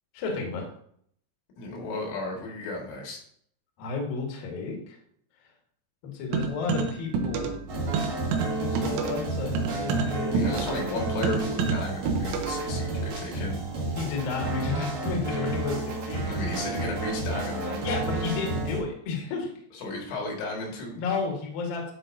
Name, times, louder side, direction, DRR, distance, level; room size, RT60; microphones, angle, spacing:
voice 1, 0.1-0.6 3.8-5.0 6.0-7.6 8.4-10.5 10.9-11.1 13.9-16.3 17.8-19.5 21.0-21.9, left 4 dB, 60° left, 0 dB, 2.8 m, -32 dB
voice 2, 1.6-3.2 10.3-13.6 16.2-17.8 19.7-21.0, left 2 dB, 80° left, 0 dB, 4.4 m, -34 dB
sound 1, 6.3-7.7 7.9-12.7, right 5 dB, 85° right, 3.4 m, -29 dB
sound 2, 7.7-18.8, right 2 dB, 50° right, 2.4 m, -31 dB
11.0 x 5.7 x 2.7 m, 0.64 s
omnidirectional pair, 5.5 m